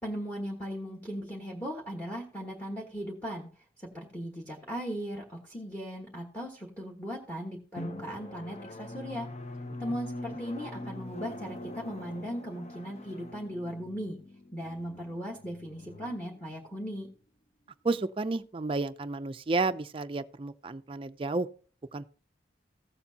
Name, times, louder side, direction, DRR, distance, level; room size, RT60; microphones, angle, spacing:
voice 1, 0.0-3.5 3.8-9.3 9.8-14.2 14.5-17.1, equal, 10° left, 1.3 m, -38 dB
Drum, 7.8-17.0, left 1 dB, 35° left, 0.7 m, -43 dB
voice 2, 17.8-21.5 21.9-22.0, right 3 dB, 30° right, 0.4 m, -31 dB
15.5 x 7.0 x 2.8 m
head